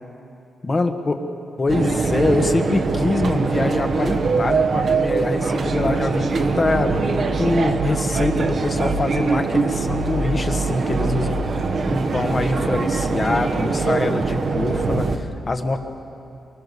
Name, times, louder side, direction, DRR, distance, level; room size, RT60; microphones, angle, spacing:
voice 1, 0.6-1.2 1.6-15.8, left 2 dB, 25° left, 5 dB, 1.3 m, -24 dB
sound 1, 1.7-15.2, right 4 dB, 40° right, 1.2 m, -22 dB
24.5 x 24.0 x 6.9 m, 2.7 s
wide cardioid pair, 170°, 0 cm